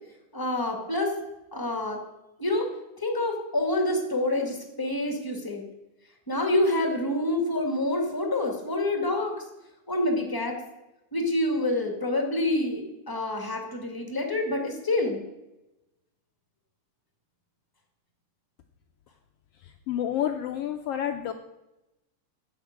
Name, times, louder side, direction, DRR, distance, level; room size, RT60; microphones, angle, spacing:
voice 1, 0.3-1.1 1.5-2.0 2.4-2.7 3.0-5.7 6.3-9.3 9.9-10.6 11.1-15.2, left 1 dB, 10° left, 3 dB, 1.4 m, -27 dB
voice 2, 19.9-21.3, left 10 dB, 85° left, 6 dB, 1.3 m, -29 dB
10.5 x 7.2 x 8.6 m, 0.94 s
omnidirectional pair, 3.5 m